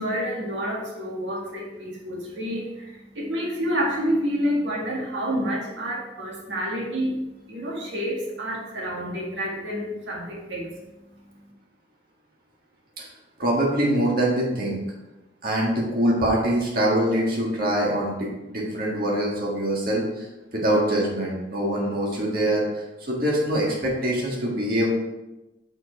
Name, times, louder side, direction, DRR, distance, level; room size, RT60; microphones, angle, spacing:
voice 1, 0.0-7.2 7.5-10.7, equal, 85° right, -3 dB, 1.8 m, -28 dB
voice 2, 13.4-14.8 15.4-20.3 20.5-24.9, right 1 dB, 50° right, -4 dB, 1.7 m, -24 dB
7.7 x 4.5 x 4.6 m, 1.0 s
head